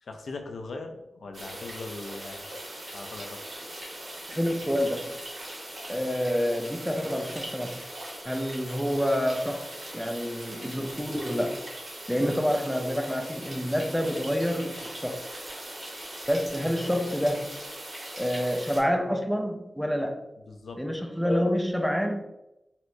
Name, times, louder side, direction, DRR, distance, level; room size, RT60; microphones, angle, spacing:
voice 1, 0.0-2.5 2.9-3.4 20.5-20.8, left 3 dB, 75° left, 0.4 m, -40 dB
sound 1, 1.3-18.8, right 1 dB, 45° right, 1.4 m, -40 dB
voice 2, 4.3-5.2 5.9-7.9 8.3-11.6 12.1-15.3 16.3-17.6 18.2-20.2 20.8-22.2, equal, ahead, 0.3 m, -28 dB
3.2 x 2.8 x 2.6 m
wide cardioid pair, 95°, 0 cm